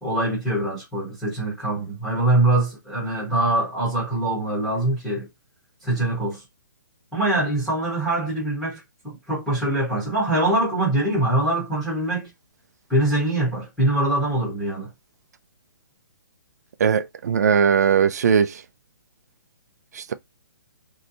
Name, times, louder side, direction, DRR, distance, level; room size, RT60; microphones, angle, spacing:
voice 1, 0.0-5.3 5.8-6.4 7.1-8.8 9.3-12.3 12.9-14.9, right 2 dB, ahead, 0.8 m, -23 dB
voice 2, 16.8-18.6 19.9-20.1, right 7 dB, 50° right, 0.4 m, -19 dB
3.2 x 2.7 x 2.6 m
hypercardioid pair, 175°, 11 cm